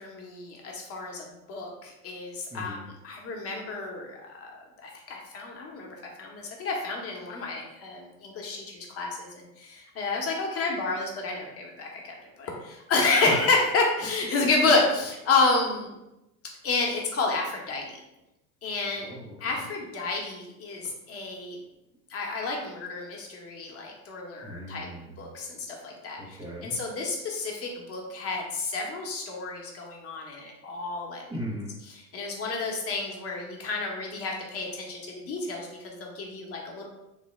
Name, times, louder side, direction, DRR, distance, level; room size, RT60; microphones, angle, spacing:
voice 1, 0.0-2.8 3.0-15.9 16.6-18.0 18.6-19.1 19.4-21.6 22.1-24.9 25.2-26.4 26.6-31.2 32.1-36.9, left 3 dB, 30° left, 0 dB, 0.8 m, -30 dB
voice 2, 2.5-2.9 14.4-14.5 19.0-19.7 24.4-25.2 26.2-26.8 31.3-31.8, equal, 10° right, -7 dB, 0.3 m, -38 dB
3.2 x 2.1 x 3.1 m, 0.91 s
hypercardioid pair, 80°, 46 cm